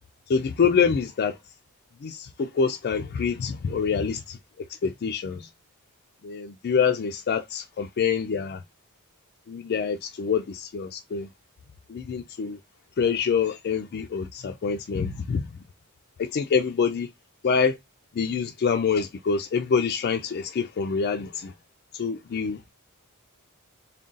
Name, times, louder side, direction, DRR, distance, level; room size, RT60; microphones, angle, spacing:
voice 1, 0.3-1.4 2.0-4.4 4.8-5.5 6.2-8.6 9.5-11.3 11.9-12.6 13.0-15.4 16.2-17.1 17.4-17.8 18.1-21.5 21.9-22.6, left 6 dB, 45° left, 0.3 m, -26 dB
3.7 x 2.2 x 3.8 m
head